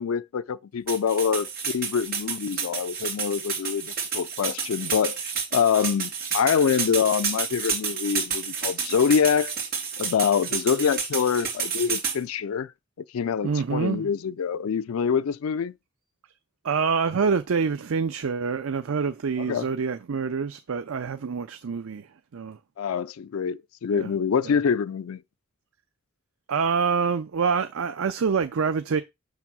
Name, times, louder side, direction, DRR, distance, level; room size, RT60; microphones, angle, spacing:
voice 1, 0.0-9.5 10.0-12.7 13.1-15.7 19.5-19.7 22.8-25.2, left 7 dB, 90° left, 0.4 m, -25 dB
sound 1, 0.9-12.2, right 6 dB, 45° right, 2.4 m, -30 dB
voice 2, 13.4-14.1 16.6-22.6 23.9-24.1 24.4-24.6 26.5-29.0, right 5 dB, 80° right, 0.5 m, -26 dB
7.0 x 3.5 x 6.0 m
head